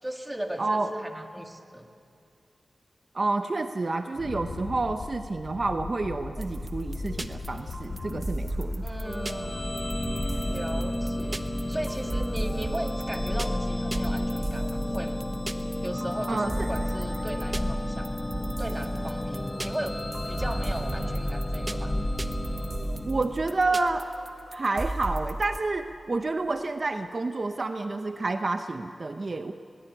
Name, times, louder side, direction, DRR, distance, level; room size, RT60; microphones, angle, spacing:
voice 1, 0.0-1.9 8.8-9.9 10.5-15.3 15.8-18.1 18.6-20.0 20.3-21.9, right 1 dB, 15° right, 4 dB, 1.9 m, -37 dB
voice 2, 0.6-0.9 3.1-8.8 16.3-16.7 23.0-24.1 24.5-29.5, right 3 dB, 50° right, 7 dB, 0.8 m, -29 dB
Wind, 4.1-11.3, left 4 dB, 80° left, 0.9 m, -39 dB
sound 1, 6.4-25.6, right 1 dB, 30° right, 1.2 m, -36 dB
sound 2, 9.0-23.8, left 1 dB, 25° left, 1.1 m, -32 dB
21.5 x 19.5 x 9.6 m, 2.6 s
wide cardioid pair, 80°, 0 cm